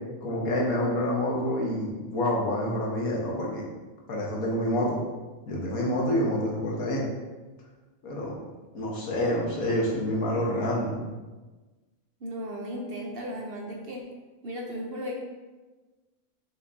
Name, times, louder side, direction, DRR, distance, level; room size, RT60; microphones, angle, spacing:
voice 1, 0.2-3.6 4.1-5.0 5.5-7.0 8.0-8.3 8.7-11.0, left 1 dB, 80° left, -2 dB, 1.7 m, -27 dB
voice 2, 12.2-14.1 14.4-15.1, equal, 50° right, 0 dB, 0.9 m, -35 dB
6.4 x 5.9 x 2.7 m, 1.2 s
omnidirectional pair, 1.5 m